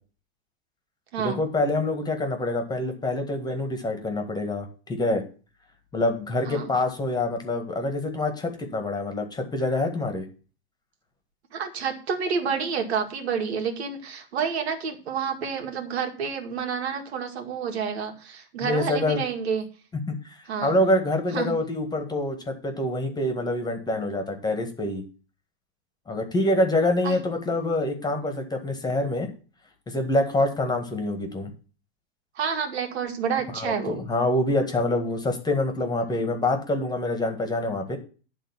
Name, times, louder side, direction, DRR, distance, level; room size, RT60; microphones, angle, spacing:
voice 1, 1.2-5.2 5.9-10.2 18.6-19.3 20.1-25.0 26.1-29.3 29.9-31.5 33.5-38.0, left 2 dB, 10° left, 6 dB, 1.6 m, -26 dB
voice 2, 11.5-19.6 20.5-20.7 21.3-21.5 27.0-27.2 32.4-34.0, right 6 dB, 90° right, 4 dB, 2.1 m, -29 dB
10.5 x 3.7 x 7.1 m, 0.36 s
supercardioid pair, 135°, 32 cm